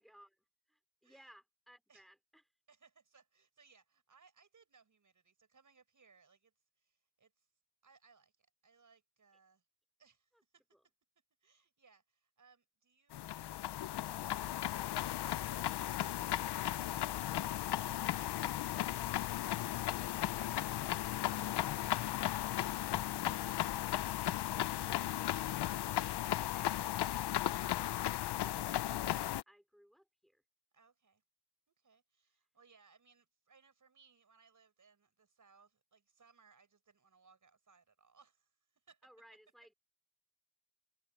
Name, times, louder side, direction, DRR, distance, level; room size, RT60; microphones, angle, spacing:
voice 1, 0.0-2.4 10.3-10.4 10.7-10.9 19.8-26.0 26.5-30.4 39.0-39.7, equal, ahead, 3.7 m, -64 dB
voice 2, 2.7-7.5 7.8-9.7 10.0-10.8 11.4-13.3 17.5-18.8 30.7-31.2 31.7-39.1, right 5 dB, 50° right, 6.3 m, -68 dB
sound 1, 13.1-29.4, left 13 dB, 80° left, 0.6 m, -36 dB
wide cardioid pair, 95°, 40 cm